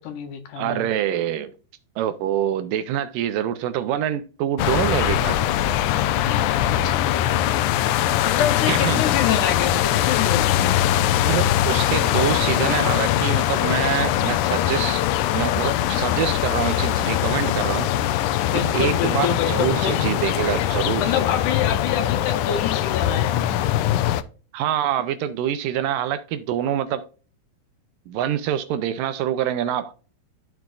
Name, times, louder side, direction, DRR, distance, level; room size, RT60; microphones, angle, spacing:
voice 1, 0.0-0.9 6.2-7.6 8.2-10.8 18.4-20.1 21.0-23.7, left 8 dB, 70° left, 2.3 m, -27 dB
voice 2, 0.6-1.5 2.0-5.4 8.7-9.0 11.3-15.1 15.3-17.9 18.5-21.2 24.5-27.1 28.1-29.9, right 10 dB, 80° right, 2.2 m, -25 dB
sound 1, 4.6-24.2, left 12 dB, 85° left, 1.7 m, -22 dB
13.5 x 4.6 x 2.5 m
omnidirectional pair, 4.1 m